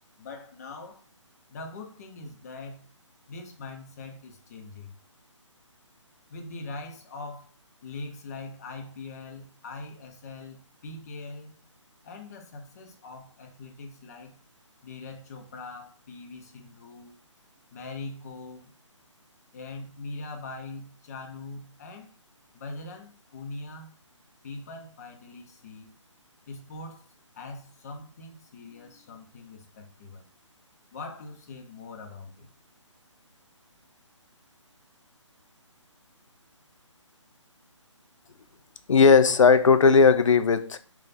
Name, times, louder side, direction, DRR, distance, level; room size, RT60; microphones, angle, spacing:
voice 1, 0.2-1.1 1.5-2.9 3.3-4.9 6.3-7.5 7.8-11.6 12.0-14.3 14.8-17.2 17.7-18.7 19.5-22.1 22.5-23.9 24.4-25.9 26.5-27.1 27.3-30.2 30.9-32.5, left 3 dB, 30° left, 0.7 m, -42 dB
voice 2, 38.9-40.8, left 5 dB, 75° left, 0.5 m, -17 dB
3.4 x 2.3 x 3.9 m
figure-of-eight pair, 155°, 16 cm